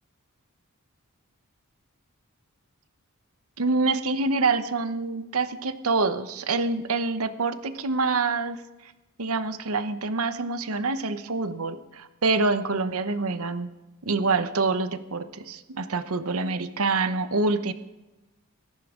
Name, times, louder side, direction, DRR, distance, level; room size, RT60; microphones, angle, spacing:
voice 1, 3.6-8.6 9.2-13.7 14.1-17.7, right 3 dB, 70° right, 11 dB, 0.9 m, -26 dB
17.5 x 14.0 x 3.7 m, 1.0 s
head